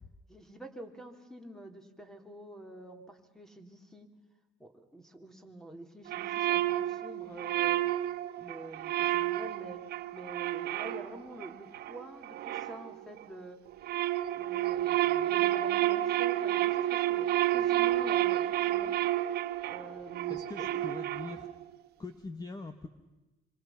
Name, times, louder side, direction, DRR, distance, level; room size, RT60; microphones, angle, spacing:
voice 1, 0.3-4.1 4.6-7.9 8.4-9.9 10.1-13.6 14.3-19.0 19.7-20.9, right 1 dB, 5° left, 6 dB, 3.5 m, -47 dB
sound 1, 6.1-13.3 13.7-21.6, right 14 dB, 70° right, 1.2 m, -30 dB
voice 2, 20.3-21.5 22.0-22.9, left 3 dB, 25° left, 9 dB, 1.5 m, -42 dB
26.5 x 26.0 x 5.9 m, 1.1 s
cardioid pair, 110°, 17 cm